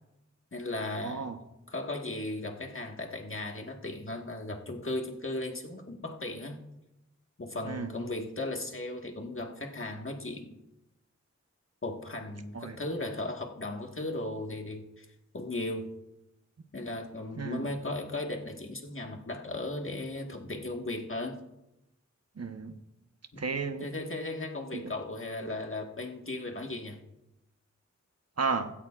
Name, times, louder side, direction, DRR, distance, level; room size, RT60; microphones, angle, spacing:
voice 1, 0.5-1.3 1.7-6.6 7.4-10.6 11.8-15.1 15.3-15.9 16.7-21.4 23.3-23.4 23.8-27.0, left 2 dB, 45° left, 2 dB, 1.6 m, -36 dB
voice 2, 1.0-1.4 7.6-7.9 12.5-12.8 17.4-17.7 22.4-22.7 23.4-23.9 28.4-28.7, right 4 dB, 60° right, 7 dB, 1.0 m, -33 dB
16.0 x 13.5 x 2.5 m, 0.93 s
wide cardioid pair, 60°, 29 cm